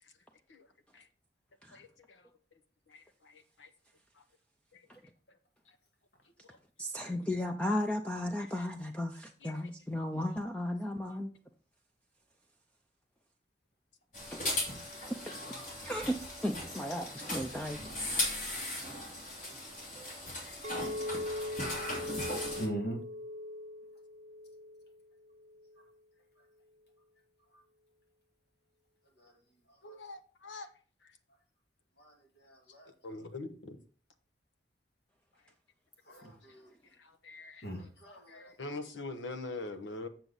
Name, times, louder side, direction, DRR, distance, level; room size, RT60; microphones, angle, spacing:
voice 1, 1.7-2.3 2.9-3.7 4.2-4.3 4.7-4.9 6.5-6.6 7.0-7.2 7.6-7.8 8.4-8.7 9.4-9.6 11.1-11.2 20.4-20.6 29.8-30.7 31.0-31.1 33.0-33.8 37.0-37.6 38.1-40.1, left 2 dB, 90° left, 8 dB, 1.1 m, -44 dB
voice 2, 6.8-11.3 14.3-14.4 15.9-17.8, left 1 dB, 5° left, 4 dB, 0.4 m, -35 dB
sound 1, 14.1-22.7, left 1 dB, 40° left, 2.7 m, -38 dB
voice 3, 15.2-15.7 16.2-16.3 16.8-16.9 17.6-17.7 21.7-22.1 22.6-23.0 25.8-25.9 29.2-29.4 29.7-30.0 32.0-33.2 36.1-36.7 37.6-38.8, right 1 dB, 60° left, 1 dB, 2.2 m, -43 dB
Chink clink, 20.6-25.0 25.3-25.8, left 1 dB, 40° right, 0.8 m, -40 dB
7.8 x 6.9 x 4.0 m, 0.40 s
head